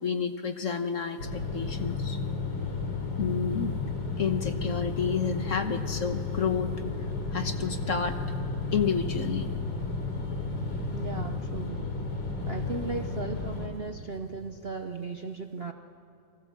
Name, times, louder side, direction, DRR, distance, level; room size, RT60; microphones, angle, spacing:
voice 1, 0.0-2.2 3.2-3.8 4.2-6.7 7.3-8.2 8.7-9.5, left 6 dB, 50° left, 7 dB, 1.3 m, -30 dB
sound 1, 1.2-13.7, left 3 dB, 75° left, 3.7 m, -32 dB
voice 2, 10.9-11.9 12.5-15.7, right 3 dB, 45° right, 6 dB, 0.8 m, -36 dB
28.5 x 23.5 x 7.2 m, 2.7 s
omnidirectional pair, 2.0 m